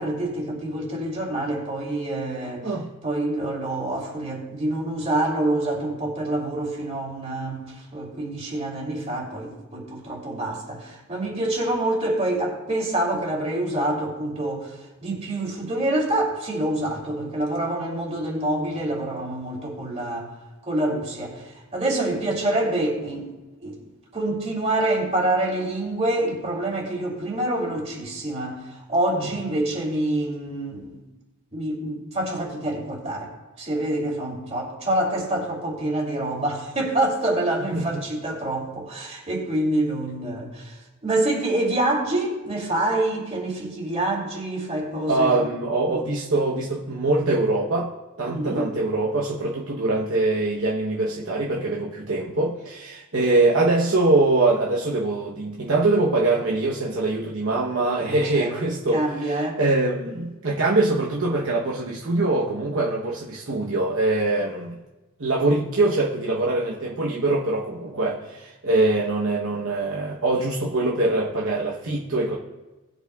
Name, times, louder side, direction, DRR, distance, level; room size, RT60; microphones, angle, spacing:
voice 1, 0.0-2.7 3.0-20.3 20.6-23.3 23.6-23.8 24.1-31.0 31.5-33.3 33.6-45.4 45.8-46.0 48.3-48.7 58.0-58.5 58.9-59.6 67.9-68.0, right 1 dB, 30° right, -2 dB, 2.8 m, -26 dB
voice 2, 37.7-38.0 45.1-64.8 65.2-72.3, right 2 dB, 65° right, -3 dB, 1.0 m, -23 dB
19.0 x 8.1 x 2.4 m, 1.1 s
head